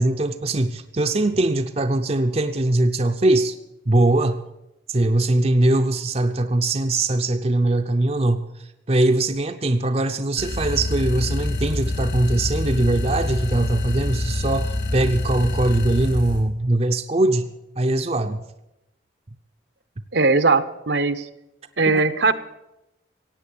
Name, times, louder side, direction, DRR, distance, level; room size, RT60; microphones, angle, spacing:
voice 1, 0.0-3.5 3.9-4.4 4.9-8.5 8.9-18.4, right 2 dB, 35° right, 7 dB, 0.6 m, -21 dB
Striker Close, 10.4-16.4, left 1 dB, 65° left, 3.7 m, -26 dB
voice 2, 20.1-21.3 21.8-22.3, right 3 dB, 70° right, 11 dB, 0.9 m, -19 dB
16.5 x 8.7 x 8.6 m, 0.91 s
head